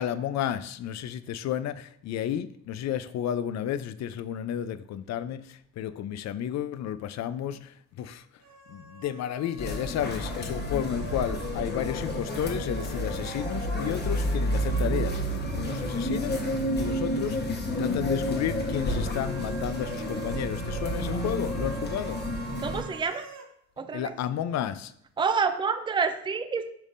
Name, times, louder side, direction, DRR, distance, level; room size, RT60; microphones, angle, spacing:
voice 1, 0.0-8.3 8.7-15.2 15.5-16.4 16.7-17.5 17.8-22.2 23.9-24.9, left 10 dB, 65° left, 0.5 m, -32 dB
sound 1, 8.4-15.0 15.2-15.3 18.4-23.5, right 7 dB, 65° right, 0.9 m, -46 dB
sound 2, 9.6-22.8, equal, 35° left, 1.1 m, -30 dB
voice 2, 22.6-23.3 23.8-24.1 25.2-26.7, right 5 dB, 15° right, 0.5 m, -28 dB
10.5 x 3.6 x 2.5 m
cardioid pair, 90°, 30 cm